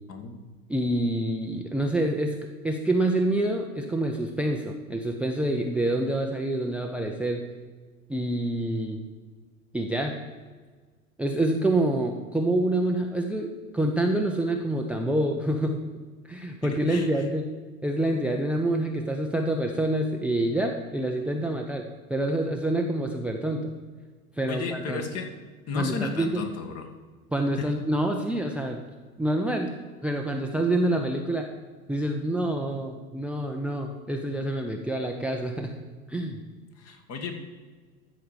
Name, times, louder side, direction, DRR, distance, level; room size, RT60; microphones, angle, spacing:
voice 1, 0.7-2.4 2.6-7.4 8.1-9.0 9.7-10.2 11.2-15.8 16.3-17.5 17.8-23.7 24.4-25.0 25.7-26.4 27.3-28.8 29.2-29.7 30.0-31.5 31.9-35.7 36.1-36.4, right 1 dB, 5° right, 4 dB, 0.7 m, -27 dB
voice 2, 16.6-17.1 24.5-25.3 25.7-26.9 27.6-27.7 36.8-37.4, left 5 dB, 35° left, 5 dB, 1.8 m, -34 dB
13.5 x 5.0 x 7.1 m, 1.5 s
figure-of-eight pair, 85°, 42 cm